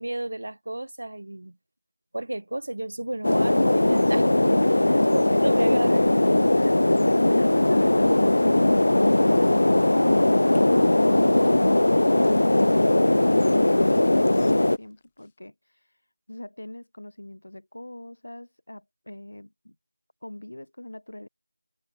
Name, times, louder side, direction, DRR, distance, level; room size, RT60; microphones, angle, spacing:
voice 1, 0.0-1.6 2.1-4.6 5.1-6.1, right 1 dB, 70° right, 1.8 m, -32 dB
sound 1, 3.2-14.8, left 1 dB, 70° left, 0.7 m, -19 dB
voice 2, 4.6-5.4 6.5-15.9 16.3-19.8 20.2-21.3, left 1 dB, 90° left, 2.2 m, -43 dB
sound 2, 15.1-15.4, left 7 dB, 15° left, 8.0 m, -63 dB
figure-of-eight pair, 175°, 0 cm